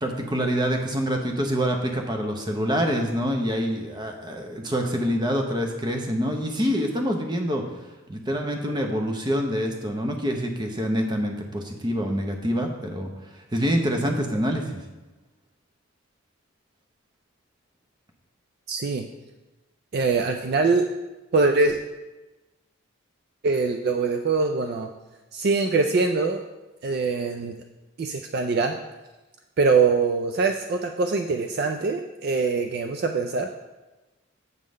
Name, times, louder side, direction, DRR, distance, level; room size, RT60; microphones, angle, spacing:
voice 1, 0.0-7.6 8.1-13.1 13.5-14.8, equal, 20° right, 3 dB, 0.8 m, -26 dB
voice 2, 18.7-19.1 19.9-20.8 21.3-21.8 23.4-24.9 25.3-26.4 26.8-27.6 28.0-28.7 29.6-33.5, right 4 dB, 45° right, 5 dB, 0.3 m, -23 dB
8.0 x 3.7 x 6.3 m, 1.1 s
head